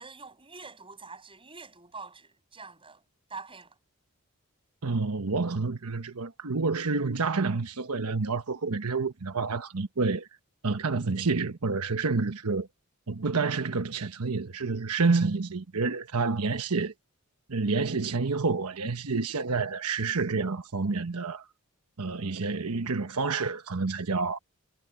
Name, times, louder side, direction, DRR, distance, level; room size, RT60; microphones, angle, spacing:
voice 1, 0.0-3.0 3.3-3.8, right 4 dB, 25° right, 6.1 m, -45 dB
voice 2, 4.8-10.3 10.6-12.7 13.1-16.9 17.5-21.4 22.0-24.4, right 4 dB, 90° right, 1.1 m, -28 dB
head